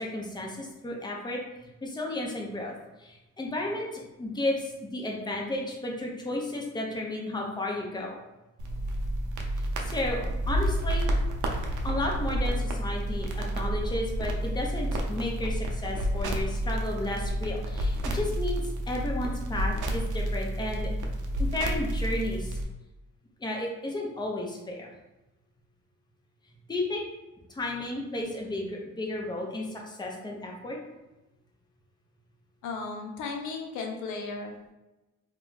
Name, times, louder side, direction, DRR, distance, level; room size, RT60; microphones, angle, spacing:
voice 1, 0.0-1.4 1.8-8.2 9.6-11.1 11.8-18.6 18.9-20.9 21.4-22.6 23.4-24.9 26.7-27.0 27.5-30.8, left 1 dB, 15° left, -1 dB, 0.7 m, -33 dB
sound 1, 8.6-22.6, right 1 dB, 80° right, 0.6 m, -30 dB
voice 2, 32.6-34.7, left 4 dB, 85° left, 2 dB, 0.6 m, -35 dB
2.3 x 2.2 x 3.8 m, 0.99 s
cardioid pair, 90°, 30 cm